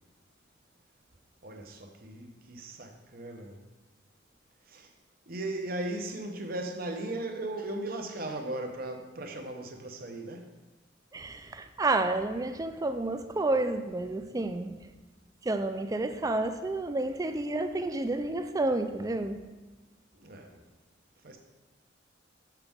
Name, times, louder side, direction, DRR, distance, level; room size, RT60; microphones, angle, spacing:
voice 1, 1.4-3.6 4.7-4.9 5.3-10.5 20.1-20.6 21.2-21.4, right 1 dB, 50° right, 4 dB, 0.8 m, -37 dB
voice 2, 11.1-14.8 15.4-19.5, right 2 dB, 20° right, 9 dB, 0.3 m, -30 dB
6.9 x 5.7 x 3.6 m, 1.2 s
head